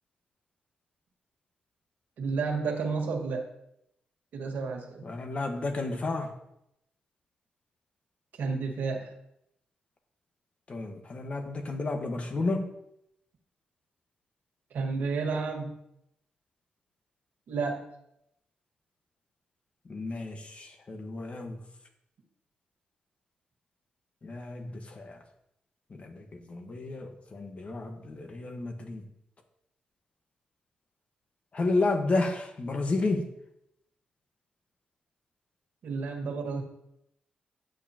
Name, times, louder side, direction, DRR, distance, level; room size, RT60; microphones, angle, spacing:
voice 1, 2.2-3.5 4.3-5.1 8.3-9.1 14.7-15.8 17.5-17.8 35.8-36.6, right 4 dB, 75° right, 1 dB, 1.9 m, -31 dB
voice 2, 5.0-6.3 10.7-12.7 19.8-21.6 24.2-25.2 25.9-29.0 31.5-33.3, left 3 dB, 40° left, 5 dB, 1.5 m, -31 dB
9.6 x 8.9 x 3.0 m, 0.79 s
cardioid pair, 80°, 3 cm